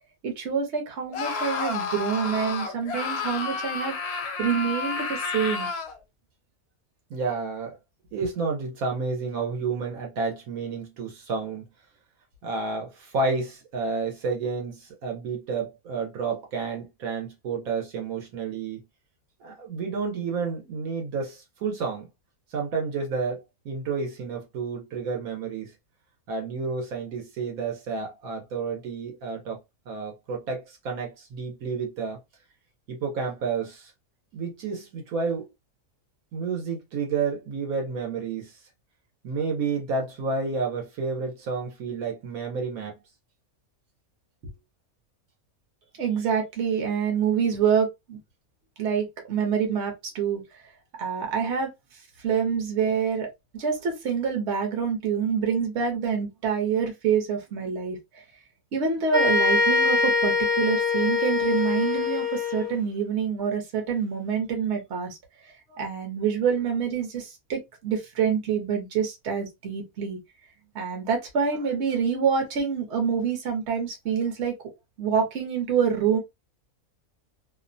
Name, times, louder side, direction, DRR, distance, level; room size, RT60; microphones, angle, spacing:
voice 1, 0.2-3.9 4.4-5.7 46.0-48.2 48.8-50.4 51.0-51.7 52.2-53.3 53.6-58.0 58.7-65.2 65.7-70.2 70.7-74.5 75.0-76.2, right 7 dB, 55° right, 1.1 m, -26 dB
Screaming, 1.1-6.0, left 4 dB, 60° left, 0.7 m, -31 dB
voice 2, 7.1-7.8 8.1-11.6 12.4-18.8 19.4-22.1 22.5-25.7 26.3-32.2 32.9-33.9 34.3-35.5 36.3-38.6 39.2-43.0, right 4 dB, 75° right, 1.2 m, -30 dB
sound 1, 59.1-62.8, left 4 dB, 35° right, 0.8 m, -23 dB
2.8 x 2.1 x 2.5 m
omnidirectional pair, 1.5 m